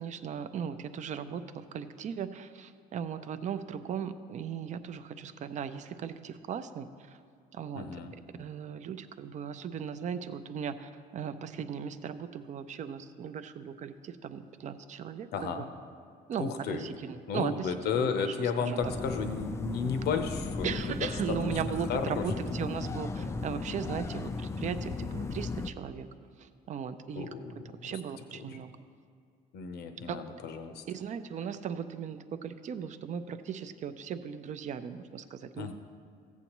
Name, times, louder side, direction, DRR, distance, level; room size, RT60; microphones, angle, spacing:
voice 1, 0.0-7.2 7.5-8.0 8.4-15.7 16.3-18.8 20.6-26.1 26.4-28.7 30.1-30.2 30.9-35.7, right 7 dB, 45° right, 11 dB, 0.5 m, -38 dB
voice 2, 7.7-8.1 15.3-15.6 16.4-16.9 17.3-21.0 21.9-22.2 27.2-28.0 28.5-28.6 29.5-30.8 35.6-35.7, left 5 dB, 75° left, 7 dB, 0.8 m, -33 dB
sound 1, 18.8-25.7, left 4 dB, 15° left, 0.3 m, -36 dB
15.0 x 8.2 x 3.0 m, 2.3 s
cardioid pair, 110°, 17 cm